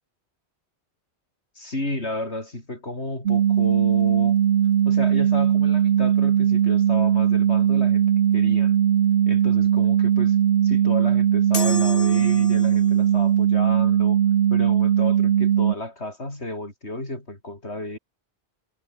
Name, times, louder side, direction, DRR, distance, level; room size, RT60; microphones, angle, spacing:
voice 1, 1.6-4.4 4.9-8.1 8.3-8.8 9.3-10.4 10.6-14.2 14.5-18.0, left 1 dB, 75° left, 6.9 m, -32 dB
sound 1, 3.3-15.8, right 9 dB, 65° right, 0.9 m, -19 dB
sound 2, 11.5-13.0, left 4 dB, 55° left, 1.9 m, -32 dB
omnidirectional pair, 1.1 m